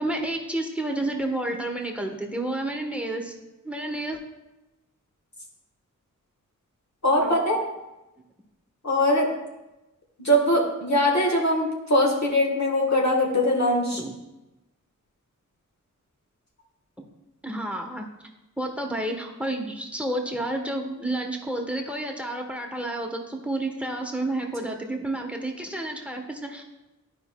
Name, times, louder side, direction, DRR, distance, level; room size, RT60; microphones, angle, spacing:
voice 1, 0.0-3.3 3.6-4.2 7.2-7.3 14.0-14.1 17.4-18.0 18.6-26.6, right 1 dB, 5° right, 2 dB, 1.0 m, -30 dB
voice 2, 7.0-7.6 8.8-9.3 10.2-14.0, left 1 dB, 55° left, -2 dB, 1.3 m, -21 dB
12.0 x 5.0 x 2.2 m, 1.0 s
wide cardioid pair, 65°, 32 cm